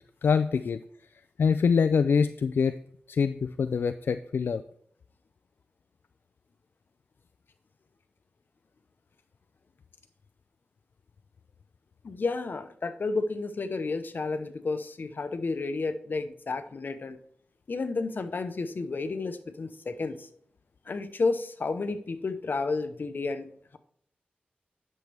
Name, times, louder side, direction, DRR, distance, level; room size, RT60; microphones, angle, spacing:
voice 1, 0.2-0.8 1.4-2.8 3.1-4.6, left 6 dB, 80° left, 11 dB, 0.4 m, -24 dB
voice 2, 12.0-17.2 17.7-20.3 20.9-23.5, left 3 dB, 65° left, 10 dB, 0.9 m, -31 dB
11.0 x 6.6 x 3.4 m, 0.66 s
wide cardioid pair, 70°, 4 cm